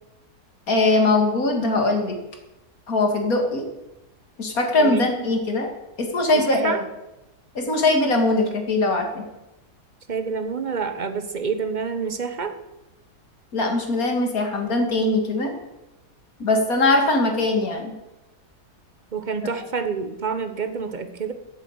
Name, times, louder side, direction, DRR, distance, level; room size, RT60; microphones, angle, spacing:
voice 1, 0.7-2.2 2.9-3.7 4.4-5.7 6.0-6.7 7.5-9.2 13.5-15.5 16.4-17.9, left 2 dB, 60° left, 3 dB, 2.6 m, -21 dB
voice 2, 4.7-5.3 6.3-6.8 10.1-12.6 19.1-21.3, right 5 dB, 35° right, 8 dB, 1.1 m, -28 dB
10.0 x 8.6 x 8.1 m, 0.98 s
omnidirectional pair, 1.7 m